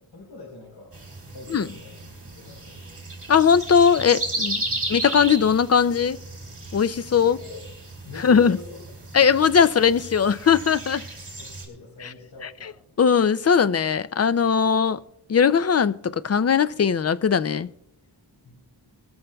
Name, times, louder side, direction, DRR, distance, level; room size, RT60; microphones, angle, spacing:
voice 1, 0.1-0.9 1.3-2.0 2.4-2.8 4.7-4.9 7.2-7.7 8.0-8.8 11.4-12.7 18.4-18.7, left 2 dB, 75° left, 4.4 m, -43 dB
sound 1, 0.9-11.6, right 2 dB, 35° right, 3.9 m, -35 dB
voice 2, 3.3-4.6 4.9-6.2 6.7-7.4 8.2-8.6 9.1-11.0 12.0-12.1 12.6-12.7 13.0-15.0 15.3-17.7, left 7 dB, 40° left, 0.4 m, -19 dB
21.5 x 13.0 x 2.3 m
wide cardioid pair, 110°, 41 cm